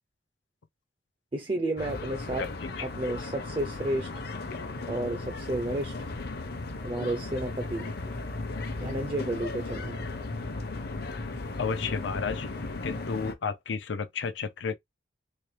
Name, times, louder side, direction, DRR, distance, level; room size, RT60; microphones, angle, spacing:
voice 1, 1.3-2.5 2.8-4.1 4.9-6.0 6.8-7.9 8.8-10.1, right 1 dB, 30° right, 0.4 m, -31 dB
sound 1, 1.8-13.3, left 2 dB, 60° left, 0.8 m, -36 dB
voice 2, 2.4-2.9 11.6-12.5 12.8-14.8, left 5 dB, 90° left, 0.5 m, -32 dB
4.3 x 2.2 x 3.2 m
head